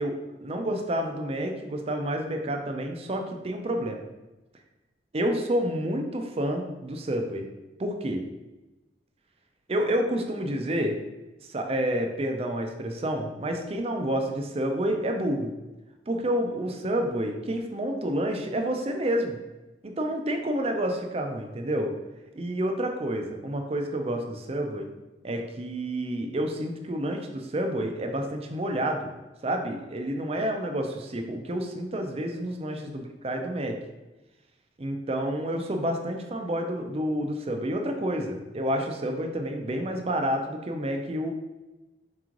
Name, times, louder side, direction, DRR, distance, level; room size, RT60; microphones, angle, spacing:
voice 1, 0.0-4.1 5.1-7.5 7.8-8.2 9.7-11.0 11.5-15.5 16.1-19.4 19.8-21.9 22.4-24.9 25.2-29.0 29.4-33.8 34.8-41.3, right 1 dB, 35° right, 4 dB, 0.5 m, -29 dB
4.6 x 3.1 x 3.8 m, 1.1 s
head